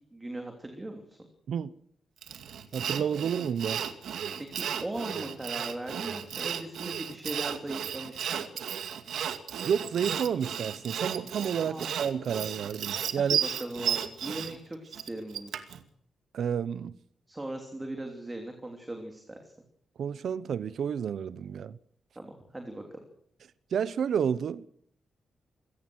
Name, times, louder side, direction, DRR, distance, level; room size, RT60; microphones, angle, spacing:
voice 1, 0.1-1.2 4.5-8.5 11.7-11.9 13.2-15.5 17.3-19.5 22.1-23.0, right 1 dB, 15° right, 3.1 m, -39 dB
Sawing, 2.2-15.8, right 8 dB, 85° right, 2.3 m, -34 dB
voice 2, 2.7-3.8 9.6-13.4 16.3-16.9 20.0-21.8 23.7-24.7, right 7 dB, 60° right, 1.0 m, -30 dB
27.0 x 17.5 x 6.4 m
wide cardioid pair, 170°, 0 cm